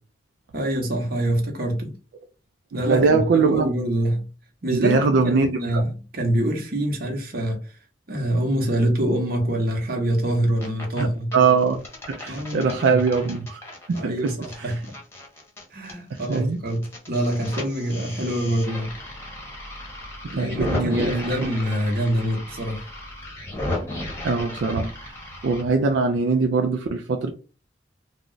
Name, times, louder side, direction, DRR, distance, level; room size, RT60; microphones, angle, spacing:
voice 1, 0.5-1.9 2.7-4.3 4.6-7.6 8.1-11.3 12.3-13.0 13.9-14.9 15.7-18.9 20.3-22.8, right 1 dB, 55° right, 0.8 m, -25 dB
voice 2, 2.9-3.7 4.7-5.8 11.0-11.1 11.3-11.8 12.1-13.6 13.9-14.3 14.6-14.7 16.1-16.6 20.4-21.5 24.2-25.1 25.4-27.3, right 4 dB, 75° right, 0.3 m, -22 dB
sound 1, 10.3-11.0 11.3-16.4 16.7-25.6, left 1 dB, 15° left, 0.9 m, -35 dB
2.4 x 2.0 x 3.7 m
head